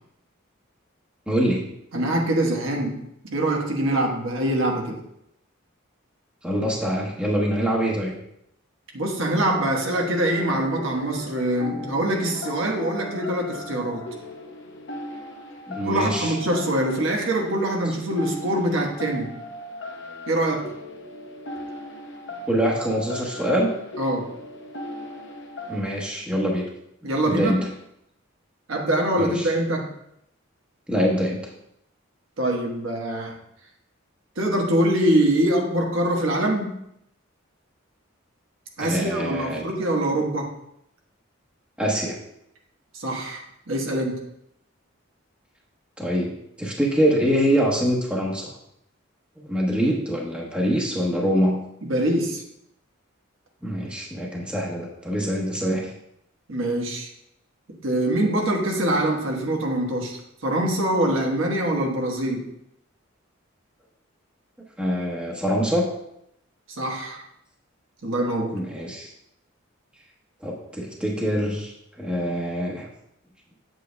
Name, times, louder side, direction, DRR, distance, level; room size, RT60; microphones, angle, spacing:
voice 1, 1.3-1.6 6.4-8.1 15.7-16.4 22.5-23.7 25.7-26.6 27.2-27.7 29.2-29.5 30.9-31.4 38.8-39.7 41.8-42.2 46.0-48.5 49.4-51.6 53.6-55.9 64.8-65.9 68.5-69.1 70.4-72.9, equal, 5° right, -3 dB, 1.1 m, -24 dB
voice 2, 1.9-3.0 3.3-5.0 8.9-14.0 15.8-19.3 20.3-20.7 24.0-24.3 27.0-27.6 28.7-29.9 32.4-33.3 34.4-36.8 38.8-40.5 42.9-44.2 51.8-52.4 56.5-57.1 57.8-62.5 66.7-67.2 68.0-68.6, right 1 dB, 75° right, 0 dB, 1.2 m, -24 dB
sound 1, 9.5-25.8, left 1 dB, 60° left, 0.9 m, -38 dB
7.9 x 7.9 x 2.2 m, 0.77 s
head